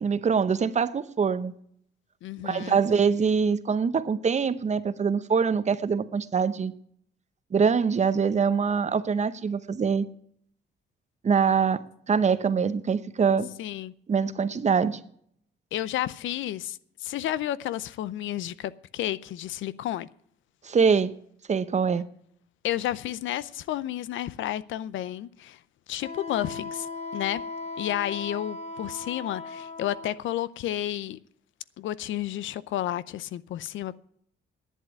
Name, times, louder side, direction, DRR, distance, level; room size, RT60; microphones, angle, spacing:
voice 1, 0.0-1.6 2.4-6.7 7.5-10.1 11.2-11.8 12.1-13.5 14.1-15.0 20.6-21.1 21.5-22.1, right 6 dB, 35° right, 0.8 m, -24 dB
voice 2, 2.2-2.8 13.6-13.9 15.7-20.1 22.6-25.6 25.9-26.9 27.1-27.4 27.8-31.2 31.8-34.0, left 13 dB, 75° left, 0.6 m, -31 dB
Wind instrument woodwind instrument, 26.0-30.2, left 3 dB, 35° left, 1.4 m, -37 dB
11.0 x 8.3 x 9.1 m
cardioid pair, 90°, 20 cm